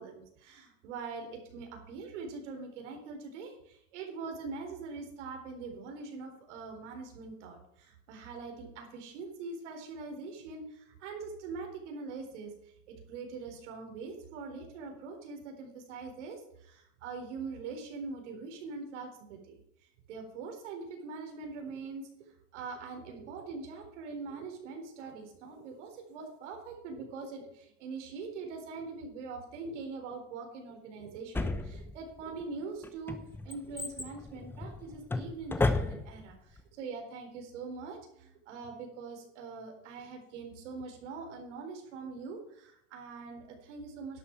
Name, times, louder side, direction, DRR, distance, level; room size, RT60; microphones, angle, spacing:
voice 1, 0.0-19.6 20.1-22.1 22.5-33.2 33.4-44.2, right 4 dB, 70° right, 3 dB, 4.2 m, -43 dB
Drawer open or close, 31.3-32.2 32.8-36.3 36.6-36.7, left 3 dB, 5° left, 0.7 m, -33 dB
11.5 x 8.4 x 6.1 m, 0.75 s
supercardioid pair, 145°, 37 cm